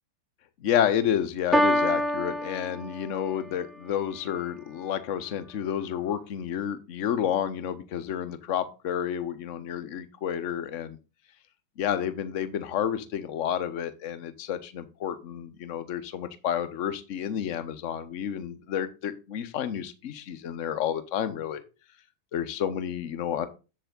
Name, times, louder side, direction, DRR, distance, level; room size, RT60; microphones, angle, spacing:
voice 1, 0.6-11.0 11.8-21.6 22.3-23.5, left 9 dB, 45° left, 11 dB, 1.1 m, -30 dB
Piano, 1.5-3.5, equal, ahead, 0.7 m, -26 dB
7.5 x 6.8 x 3.9 m, 0.30 s
figure-of-eight pair, 90°, 0 cm